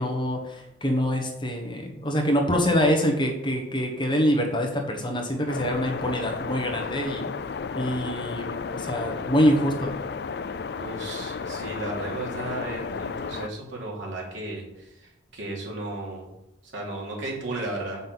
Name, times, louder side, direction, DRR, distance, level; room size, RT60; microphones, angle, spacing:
voice 1, 0.0-7.3 7.7-9.9, equal, 25° left, 2 dB, 1.2 m, -25 dB
sound 1, 5.5-13.5, left 5 dB, 55° left, 0.4 m, -33 dB
voice 2, 10.7-16.3 16.6-18.0, right 2 dB, 75° right, -3 dB, 3.0 m, -34 dB
7.4 x 5.6 x 6.1 m, 0.87 s
head